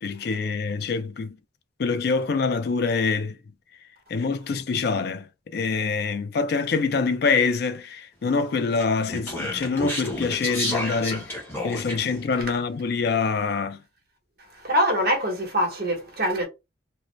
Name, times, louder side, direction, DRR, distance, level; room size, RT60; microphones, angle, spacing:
voice 1, 0.0-1.4 1.8-3.4 4.1-5.3 5.5-11.3 11.6-13.8, left 4 dB, 55° left, 0.4 m, -25 dB
Speech, 8.7-12.2, left 1 dB, 10° left, 0.9 m, -31 dB
voice 2, 14.5-16.5, equal, 55° right, 1.0 m, -24 dB
2.5 x 2.0 x 3.1 m
head